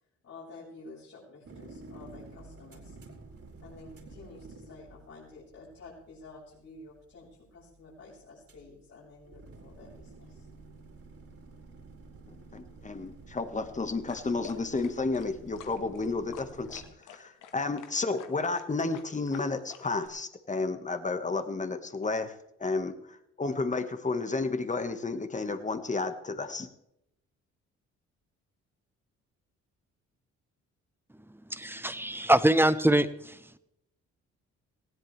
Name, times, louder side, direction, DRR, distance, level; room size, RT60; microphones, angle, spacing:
voice 1, 0.2-3.0 3.6-10.5, left 3 dB, 60° left, -9 dB, 6.6 m, -50 dB
sound 1, 1.4-16.9, right 3 dB, 50° right, 4.3 m, -51 dB
voice 2, 12.3-16.8 17.1-26.7, left 3 dB, 25° left, 9 dB, 1.7 m, -32 dB
sound 2, 14.1-20.1, left 8 dB, 90° left, 1.7 m, -49 dB
voice 3, 31.6-33.4, right 1 dB, 5° right, 12 dB, 1.0 m, -23 dB
19.0 x 16.5 x 3.4 m, 0.79 s
cardioid pair, 90°, 30 cm